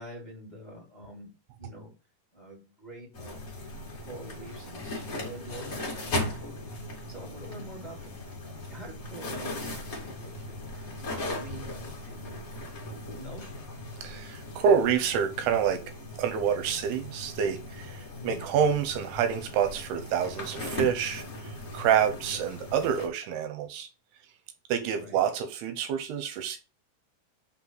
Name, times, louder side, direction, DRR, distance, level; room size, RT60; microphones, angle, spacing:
voice 1, 0.0-1.9 2.3-3.5 4.0-6.8 7.1-8.2 8.7-12.6 13.2-13.6 18.2-18.4 22.1-22.4 24.9-25.2, equal, 15° left, 1.8 m, -46 dB
sound 1, 3.1-23.1, left 2 dB, 35° left, 1.4 m, -38 dB
voice 2, 14.0-15.8 16.2-23.9 24.7-26.6, right 8 dB, 80° right, 2.8 m, -27 dB
5.6 x 4.2 x 6.0 m
omnidirectional pair, 4.7 m